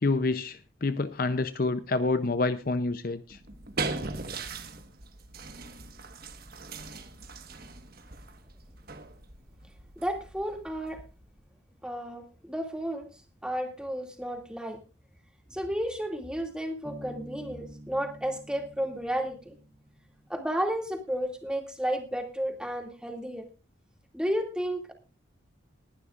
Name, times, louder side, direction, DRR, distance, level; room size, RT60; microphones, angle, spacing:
voice 1, 0.0-3.4, left 3 dB, 45° left, 12 dB, 0.6 m, -28 dB
sound 1, 3.3-11.4, right 3 dB, 50° right, 1.4 m, -40 dB
voice 2, 10.0-11.0 11.8-13.1 13.4-14.8 15.5-19.6 20.3-23.5 24.1-24.9, equal, 5° right, 3 dB, 2.3 m, -32 dB
Bass guitar, 16.8-20.4, right 1 dB, 30° right, 3.7 m, -48 dB
20.0 x 11.5 x 2.5 m, 0.31 s
head